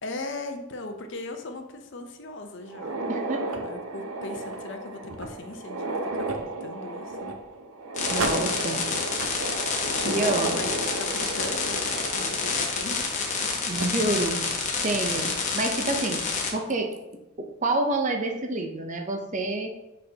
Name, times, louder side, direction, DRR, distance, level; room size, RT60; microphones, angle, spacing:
voice 1, 0.0-2.9 3.6-7.4 9.9-11.8 12.1-13.6, left 2 dB, 55° left, 5 dB, 0.7 m, -39 dB
sound 1, 2.6-13.4 13.8-13.9 14.7-14.8 15.3-15.4 16.7-17.0, right 2 dB, 75° right, 0.7 m, -33 dB
voice 2, 3.1-3.4 8.1-8.8 10.0-10.6 13.7-14.5 14.8-16.2 16.5-16.9 17.4-19.7, right 2 dB, 35° right, 3 dB, 0.7 m, -28 dB
sound 2, 8.0-16.5, left 4 dB, 35° left, 0.9 m, -28 dB
6.6 x 5.3 x 2.8 m, 0.98 s
head